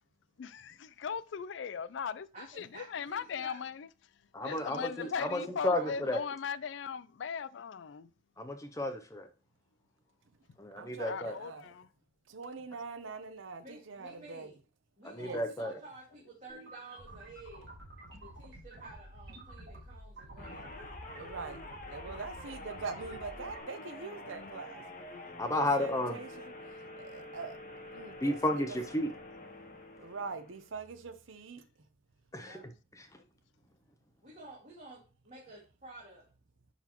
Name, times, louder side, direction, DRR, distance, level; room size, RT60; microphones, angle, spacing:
voice 1, 0.4-3.9 4.4-8.1 11.1-11.9, left 6 dB, 65° left, 0.4 m, -39 dB
voice 2, 2.3-3.7 4.4-6.3 13.6-14.5 15.0-17.7 18.2-20.8 32.4-32.6 34.2-36.2, right 2 dB, 40° right, 2.0 m, -51 dB
voice 3, 4.3-6.2 8.4-9.3 10.6-11.3 15.1-15.7 25.4-26.2 28.2-29.1 32.3-32.6, left 1 dB, 15° left, 0.5 m, -32 dB
voice 4, 10.8-11.7 12.3-14.5 15.2-15.4 21.2-24.8 25.5-28.8 30.0-31.6, right 4 dB, 85° right, 0.7 m, -43 dB
sound 1, 16.5-23.6, right 1 dB, 55° right, 2.7 m, -50 dB
sound 2, 20.4-30.7, left 2 dB, 40° left, 1.1 m, -47 dB
10.0 x 4.1 x 2.9 m
head